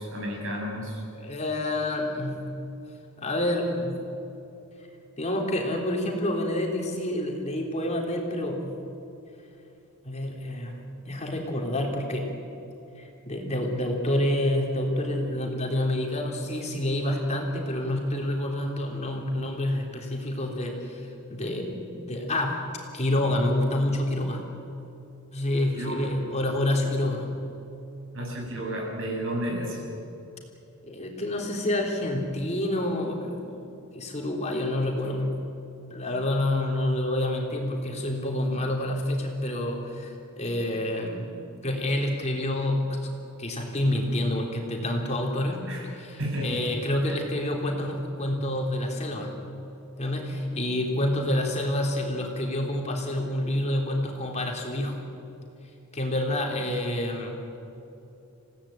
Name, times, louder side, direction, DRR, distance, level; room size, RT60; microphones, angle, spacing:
voice 1, 0.0-1.0 25.7-26.2 28.1-29.8 45.7-45.9 46.2-46.6 47.0-47.2, right 1 dB, 60° right, -1 dB, 7.7 m, -32 dB
voice 2, 1.1-2.6 3.2-4.1 5.2-8.8 10.0-12.3 13.0-22.6 22.9-24.4 25.3-27.3 30.8-35.4 35.9-41.3 41.6-43.1 43.4-45.7 45.9-49.3 50.0-55.0 55.9-57.4, left 1 dB, 30° left, 0 dB, 3.6 m, -28 dB
29.0 x 17.5 x 8.9 m, 2.9 s
head